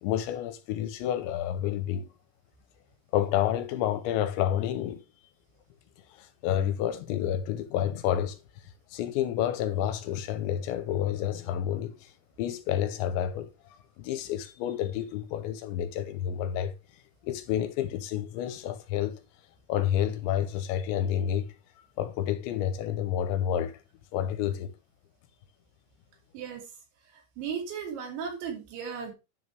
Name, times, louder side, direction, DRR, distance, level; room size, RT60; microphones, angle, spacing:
voice 1, 0.0-2.1 3.1-5.0 6.1-8.4 8.9-12.1 12.4-13.5 14.0-16.7 17.2-19.2 19.7-21.5 22.0-23.8 24.1-24.7, left 10 dB, 80° left, 3.1 m, -29 dB
voice 2, 26.3-26.7 27.1-29.1, right 7 dB, 80° right, 4.6 m, -36 dB
10.5 x 6.1 x 3.5 m
omnidirectional pair, 5.2 m